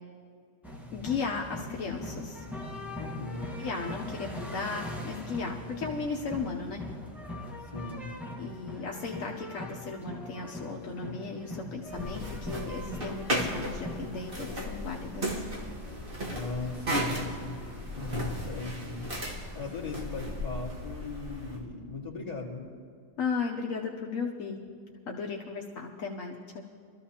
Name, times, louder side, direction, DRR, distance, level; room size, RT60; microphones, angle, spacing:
sound 1, 0.6-20.0, left 1 dB, ahead, 1.3 m, -42 dB
voice 1, 0.9-2.4 3.6-6.8 8.4-15.4 23.2-24.6 25.0-26.7, left 4 dB, 75° left, 0 dB, 1.2 m, -35 dB
voice 2, 3.0-3.5 7.6-8.1 16.3-17.6 18.0-19.1 19.5-22.6, left 3 dB, 30° left, -5 dB, 2.3 m, -38 dB
sound 2, 11.9-21.6, equal, 40° right, 1.6 m, -35 dB
23.5 x 13.5 x 2.9 m, 2.3 s
omnidirectional pair, 1.4 m